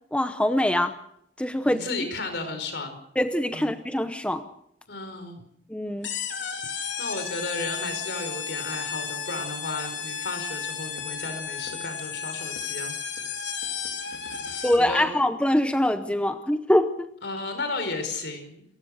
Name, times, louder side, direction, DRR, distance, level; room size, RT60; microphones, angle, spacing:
voice 1, 0.1-0.9 1.4-1.8 3.2-4.4 5.7-6.1 14.6-17.1, left 1 dB, 5° left, 9 dB, 0.8 m, -24 dB
voice 2, 1.6-3.0 3.5-3.7 4.9-5.4 7.0-12.9 14.3-15.1 17.2-18.6, left 3 dB, 65° left, 7 dB, 5.0 m, -34 dB
sound 1, 6.0-14.9, left 6 dB, 90° left, 3.7 m, -33 dB
27.5 x 15.0 x 6.5 m, 0.72 s
head